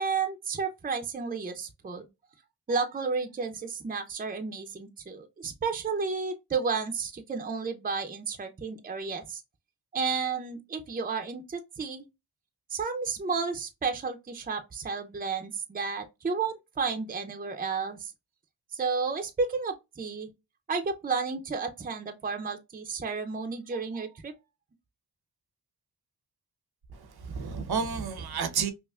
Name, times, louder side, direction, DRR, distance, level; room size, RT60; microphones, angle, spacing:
voice 1, 0.0-2.1 2.7-9.4 9.9-12.0 12.7-18.1 18.7-20.3 20.7-24.3, right 5 dB, 20° right, 0.6 m, -32 dB
voice 2, 26.9-28.7, right 6 dB, 70° right, 0.9 m, -31 dB
5.4 x 2.1 x 2.3 m
cardioid pair, 75°, 39 cm